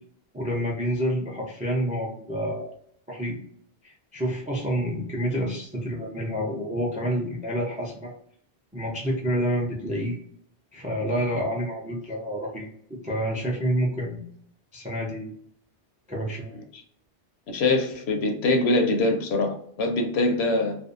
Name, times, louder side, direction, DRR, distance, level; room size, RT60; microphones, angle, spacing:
voice 1, 0.3-2.7 3.1-3.4 3.8-8.1 8.7-10.2 10.7-14.3 14.7-15.4 16.1-16.6, equal, 15° right, 0 dB, 0.3 m, -28 dB
voice 2, 17.5-20.8, left 2 dB, 75° left, 4 dB, 0.9 m, -23 dB
2.5 x 2.2 x 2.4 m, 0.66 s
omnidirectional pair, 1.1 m